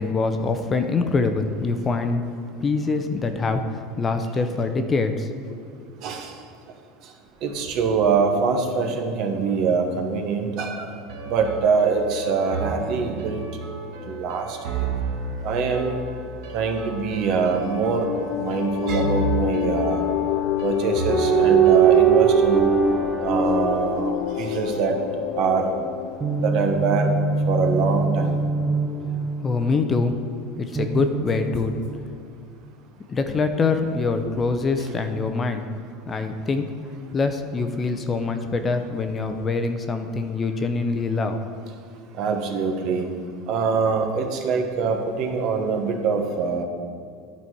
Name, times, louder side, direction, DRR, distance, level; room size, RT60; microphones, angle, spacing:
voice 1, 0.0-2.2 2.6-5.6 29.1-30.2 30.6-31.8 33.1-35.7 36.1-36.7 37.1-41.4, left 4 dB, 25° left, 7 dB, 0.5 m, -24 dB
voice 2, 6.0-6.3 7.4-10.9 11.3-13.4 14.0-14.6 15.4-16.0 16.5-18.1 18.4-20.0 20.6-22.6 23.2-24.1 24.4-25.0 25.4-25.7 26.4-27.1 27.5-28.4 34.8-34.9 42.2-43.1 43.5-46.6, right 5 dB, 55° right, 4 dB, 1.0 m, -24 dB
sound 1, 11.1-21.9, right 3 dB, 75° right, 1.3 m, -32 dB
sound 2, 17.4-27.6, left 12 dB, 85° left, 0.5 m, -28 dB
sound 3, 21.1-24.8 26.2-30.0 30.8-32.0, right 6 dB, 20° right, 0.6 m, -21 dB
10.5 x 4.2 x 4.6 m, 2.3 s
supercardioid pair, 125°, 0 cm